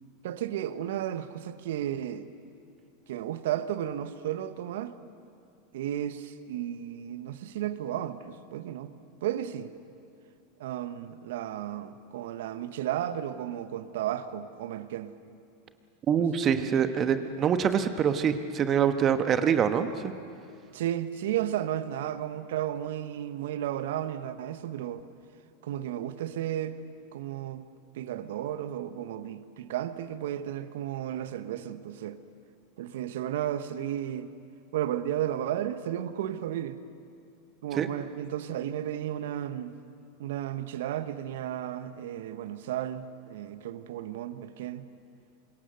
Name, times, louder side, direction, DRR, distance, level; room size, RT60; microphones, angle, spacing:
voice 1, 0.2-2.3 3.1-5.0 5.7-8.9 9.2-9.7 10.6-15.1 16.2-16.8 20.7-25.0 25.6-26.8 27.1-27.7 27.9-32.2 32.8-34.3 34.7-36.8 37.6-39.7 40.2-44.9, right 11 dB, 70° right, 13 dB, 1.0 m, -33 dB
voice 2, 16.1-20.1 37.7-37.9, right 8 dB, 35° right, 9 dB, 1.2 m, -25 dB
25.5 x 21.5 x 6.7 m, 2.5 s
hypercardioid pair, 90°, 0 cm